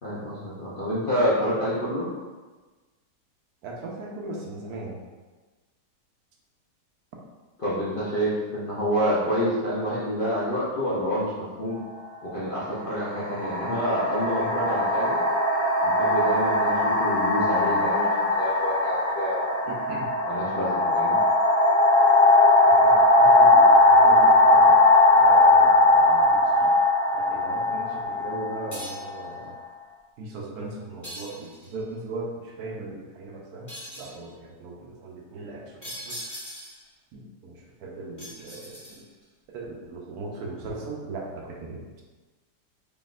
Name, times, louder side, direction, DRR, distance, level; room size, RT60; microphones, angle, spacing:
voice 1, 0.0-2.1 7.6-11.3 11.6-11.8 12.3-15.2 15.8-19.5 20.2-21.2, equal, 55° left, -9 dB, 0.6 m, -28 dB
voice 2, 3.6-5.0 13.3-13.7 14.4-14.7 19.7-20.1 22.7-24.8 25.1-26.7 27.1-29.5 30.2-33.7 33.9-36.2 37.1-39.1 39.5-42.0, right 2 dB, 70° right, -1 dB, 1.0 m, -38 dB
sound 1, 11.7-11.9 12.8-29.5, left 2 dB, 25° right, 0.9 m, -19 dB
sound 2, 28.7-29.2 31.0-31.8 33.7-34.2 35.8-36.9 38.2-39.2, equal, 15° left, 0.6 m, -40 dB
3.9 x 3.5 x 2.4 m, 1.3 s
omnidirectional pair, 1.9 m